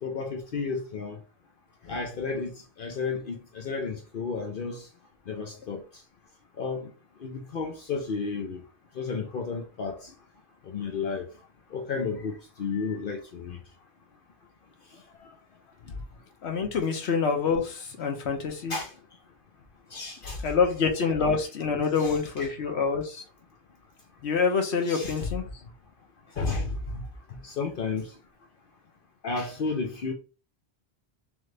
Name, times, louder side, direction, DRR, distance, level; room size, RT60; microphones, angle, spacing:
voice 1, 0.0-1.2 1.9-2.5 2.8-4.8 5.3-5.8 6.6-6.8 7.2-8.6 9.0-10.1 10.7-11.3 11.7-13.6 18.7-18.9 19.9-20.4 22.0-22.5 24.8-25.3 26.4-27.0 27.4-28.1 29.2-30.1, left 4 dB, 60° left, 0.8 m, -32 dB
voice 2, 16.4-18.7 20.4-23.2 24.2-25.4, left 5 dB, 85° left, 1.2 m, -26 dB
3.7 x 3.2 x 3.3 m
omnidirectional pair, 1.1 m